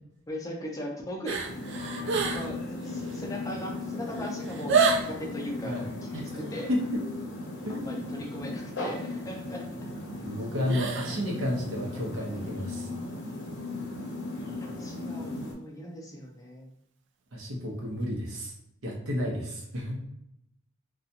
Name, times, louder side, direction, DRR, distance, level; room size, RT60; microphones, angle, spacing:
voice 1, 0.3-1.4 2.2-5.8 6.3-6.7 7.7-9.7 11.9-12.3 14.8-16.7, equal, 15° left, 0 dB, 0.4 m, -39 dB
sound 1, 1.2-2.6 2.8-3.2 3.8-3.9 4.1-5.2 10.6-11.2 11.5-11.6, right 5 dB, 60° right, 0.3 m, -28 dB
sound 2, 1.4-15.5, left 2 dB, 60° left, 0.7 m, -37 dB
voice 2, 7.6-8.1 10.2-12.9 17.3-18.5 18.8-20.0, left 1 dB, 75° right, -2 dB, 0.9 m, -31 dB
2.5 x 2.3 x 2.7 m, 0.80 s
head